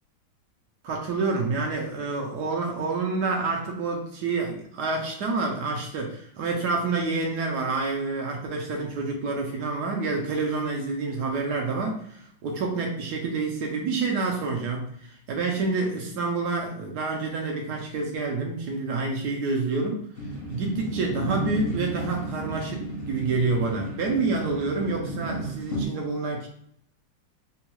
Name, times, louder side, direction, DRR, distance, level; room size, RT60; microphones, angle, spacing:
voice 1, 0.8-20.1 20.5-26.5, right 3 dB, 70° right, 1 dB, 1.0 m, -28 dB
sound 1, 20.1-25.9, right 1 dB, 75° left, 0.5 m, -33 dB
3.5 x 2.3 x 2.9 m, 0.69 s
omnidirectional pair, 2.1 m